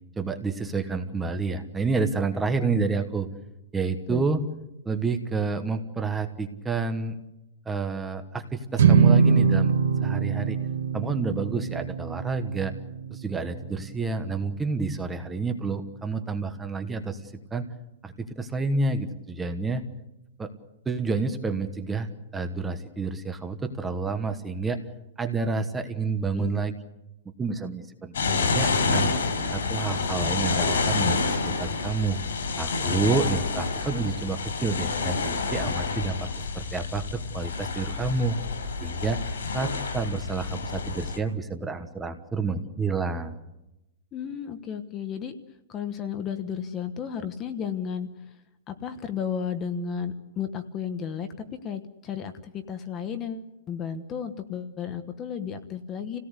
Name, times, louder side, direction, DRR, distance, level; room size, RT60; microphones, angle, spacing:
voice 1, 0.2-3.3 3.7-4.4 4.8-7.2 7.6-9.7 10.0-10.6 10.9-12.7 13.1-17.7 18.0-19.8 20.4-20.5 20.8-24.8 25.2-26.7 27.2-28.1 28.4-29.1 29.5-32.2 32.6-38.4 38.8-39.2 39.5-43.4, right 4 dB, 10° right, 7 dB, 1.3 m, -29 dB
sound 1, 8.8-15.2, right 6 dB, 80° right, 2.0 m, -24 dB
voice 2, 26.3-26.6 44.1-45.4 45.7-48.3 48.7-56.2, left 7 dB, 15° left, 9 dB, 1.2 m, -33 dB
sound 2, 28.1-41.2, left 4 dB, 90° left, 6.0 m, -28 dB
28.5 x 17.5 x 8.2 m, 0.92 s
hypercardioid pair, 175°, 0 cm